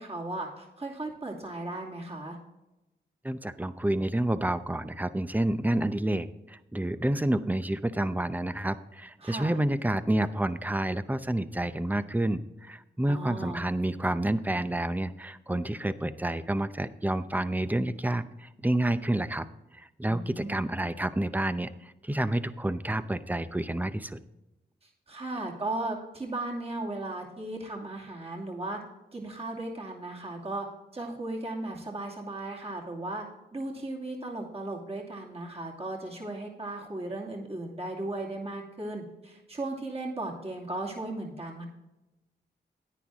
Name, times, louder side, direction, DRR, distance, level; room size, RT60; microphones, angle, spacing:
voice 1, 0.0-2.4 9.2-9.6 13.1-13.6 20.0-20.6 24.8-28.8 29.1-30.7 30.9-33.2 33.5-41.7, right 2 dB, 30° right, -1 dB, 2.5 m, -36 dB
voice 2, 3.2-19.5 19.7-24.2, right 1 dB, 10° right, 13 dB, 0.6 m, -29 dB
10.0 x 9.5 x 3.6 m, 0.97 s
cardioid pair, 55°, 19 cm